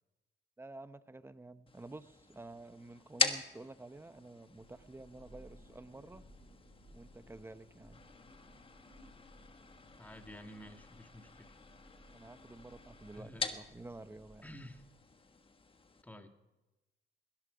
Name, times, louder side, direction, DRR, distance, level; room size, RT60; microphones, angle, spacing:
voice 1, 0.6-6.2 6.9-8.0 12.1-14.5, right 2 dB, 10° right, 13 dB, 0.8 m, -51 dB
sound 1, 1.7-16.0, left 4 dB, 25° left, 1.4 m, -43 dB
Thunder, 4.3-15.2, left 1 dB, 50° left, 7.0 m, -60 dB
voice 2, 10.0-11.5 13.1-13.5 14.4-14.8 16.0-16.3, left 1 dB, 10° left, 6 dB, 1.8 m, -51 dB
20.5 x 13.0 x 5.0 m, 1.1 s
cardioid pair, 90°, 20 cm